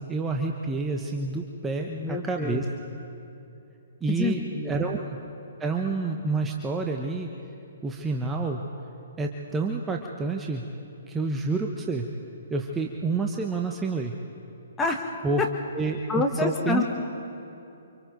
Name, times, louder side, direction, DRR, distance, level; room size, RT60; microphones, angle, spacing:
voice 1, 0.0-2.6 4.0-5.1 5.6-7.3 7.8-8.6 9.2-10.6 11.1-12.1 12.5-14.1 15.2-15.5 15.7-16.8, right 3 dB, 10° right, 2 dB, 1.1 m, -28 dB
voice 2, 1.8-2.7 4.1-4.8 14.8-15.1 15.4-15.5 16.1-16.8, left 3 dB, 10° left, 1 dB, 1.8 m, -27 dB
29.0 x 25.5 x 4.0 m, 2.8 s
figure-of-eight pair, 130°, 0 cm